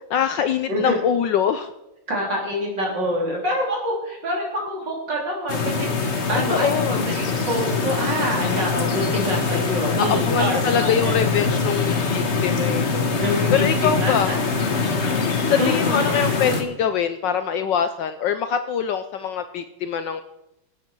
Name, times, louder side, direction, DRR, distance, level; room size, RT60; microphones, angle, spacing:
voice 1, 0.1-1.7 6.5-7.1 10.0-13.1 13.5-14.4 15.0-20.2, left 8 dB, 70° left, 10 dB, 1.1 m, -24 dB
voice 2, 2.1-11.2 13.2-14.4 15.6-16.3, equal, 55° right, -2 dB, 4.1 m, -26 dB
sound 1, 5.5-16.6, left 4 dB, 35° left, 1.4 m, -23 dB
22.5 x 8.4 x 4.5 m, 0.91 s
omnidirectional pair, 2.3 m